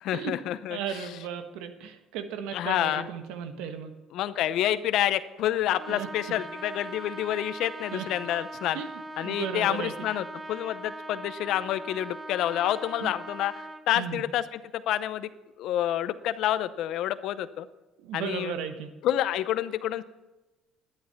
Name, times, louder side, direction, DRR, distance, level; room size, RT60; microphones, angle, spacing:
voice 1, 0.0-0.8 2.5-3.1 4.1-8.8 9.2-13.5 13.9-15.3 15.6-17.7 18.1-18.5 19.0-20.0, left 12 dB, 70° left, 13 dB, 0.7 m, -28 dB
voice 2, 0.7-3.9 5.9-6.1 7.9-8.1 8.7-10.1 13.0-13.1 13.9-14.2 18.0-18.9, right 8 dB, 80° right, 8 dB, 1.4 m, -35 dB
Trumpet, 5.7-13.9, right 2 dB, 15° right, 1.1 m, -41 dB
12.5 x 11.5 x 5.8 m, 1.1 s
supercardioid pair, 75°, 0 cm